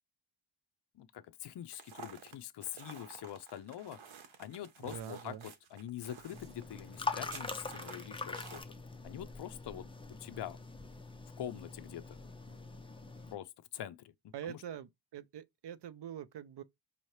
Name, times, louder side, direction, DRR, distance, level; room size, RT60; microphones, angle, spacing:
voice 1, 0.9-4.0 4.4-8.8 9.0-10.6 11.4-12.2 13.3-14.1 14.4-14.6, left 11 dB, 60° left, 0.5 m, -45 dB
sound 1, 1.7-8.6, right 6 dB, 90° right, 1.0 m, -52 dB
voice 2, 4.8-5.4 14.3-16.6, right 9 dB, 60° right, 0.6 m, -44 dB
sound 2, 6.3-13.4, left 3 dB, 10° left, 0.5 m, -43 dB
5.5 x 2.8 x 3.1 m
wide cardioid pair, 125°, 46 cm